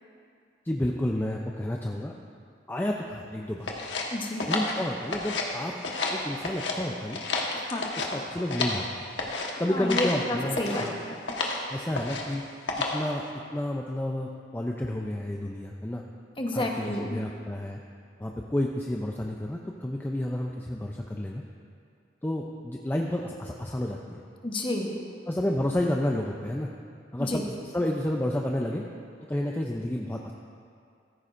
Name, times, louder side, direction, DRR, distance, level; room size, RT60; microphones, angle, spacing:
voice 1, 0.7-2.1 2.7-3.7 4.5-5.7 6.1-7.2 8.1-8.8 9.6-11.0 11.7-12.4 12.9-13.2 13.5-16.0 16.5-17.8 18.2-21.4 22.2-24.2 25.3-26.7 27.1-28.8 29.3-30.3, left 1 dB, 10° left, 0 dB, 0.5 m, -30 dB
sound 1, 3.7-5.5 5.8-6.8 7.1-8.8 9.2-9.5 9.9-10.2 10.5-10.9 11.3-11.6 11.9-12.3 12.7-13.1, left 3 dB, 90° left, 1.3 m, -31 dB
voice 2, 4.1-4.5 7.5-7.8 9.7-11.2 16.4-17.2 24.4-25.0 27.2-27.4, left 1 dB, 30° left, 1 dB, 1.1 m, -30 dB
15.0 x 13.5 x 2.6 m, 2.3 s
head